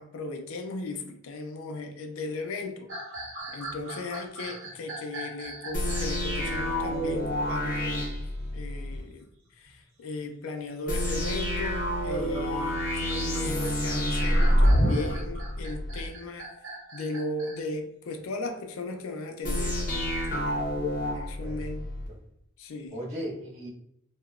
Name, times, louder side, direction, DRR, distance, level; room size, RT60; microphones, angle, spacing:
voice 1, 0.0-2.9 3.5-8.1 8.5-9.3 9.6-16.5 16.9-19.8 20.3-20.7 20.9-21.9 22.6-22.9, left 2 dB, 85° left, 0.4 m, -37 dB
sound 1, 2.9-6.2 7.7-8.3 8.6-8.7 9.4-9.8 11.5-17.6, right 2 dB, 70° right, 0.9 m, -42 dB
sound 2, 5.7-9.0 10.9-16.1 19.4-22.1, equal, 40° left, 0.6 m, -27 dB
voice 2, 21.4-22.2 22.9-23.7, equal, 35° right, 1.0 m, -38 dB
2.9 x 2.0 x 2.3 m
head